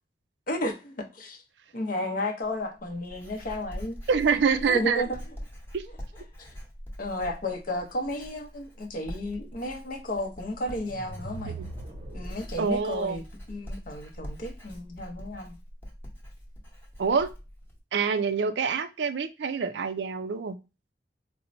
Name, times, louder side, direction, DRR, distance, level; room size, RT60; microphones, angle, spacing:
voice 1, 0.5-1.4 1.7-4.0 4.6-5.2 6.4-6.5 7.0-11.6 12.1-13.2 13.5-15.6, left 1 dB, 50° left, 0.7 m, -33 dB
Writing, 2.4-17.8, equal, 10° left, 0.9 m, -43 dB
voice 2, 4.1-5.0 5.7-5.8 11.6-11.7 12.6-13.2 17.0-17.3 17.9-20.6, right 5 dB, 75° right, 0.4 m, -26 dB
sound 1, 10.8-12.8, right 3 dB, 30° right, 0.7 m, -41 dB
4.3 x 2.1 x 2.5 m
head